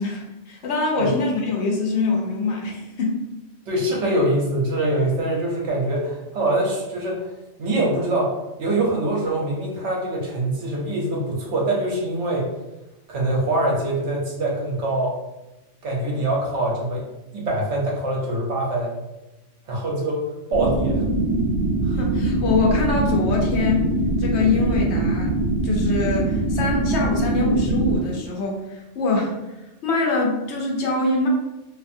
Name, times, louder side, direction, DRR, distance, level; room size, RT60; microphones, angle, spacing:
voice 1, 0.0-3.2 21.8-25.3 25.6-29.3 29.8-31.3, left 3 dB, 70° left, -1 dB, 0.9 m, -24 dB
voice 2, 3.7-7.2 7.6-8.3 8.6-12.5 13.1-15.1 15.8-17.0 17.3-18.9 19.7-20.2 20.5-21.0, right 1 dB, 75° right, -2 dB, 1.0 m, -23 dB
sound 1, 20.5-28.0, right 2 dB, 50° right, 0.8 m, -22 dB
2.6 x 2.4 x 2.6 m, 1.0 s
omnidirectional pair, 1.2 m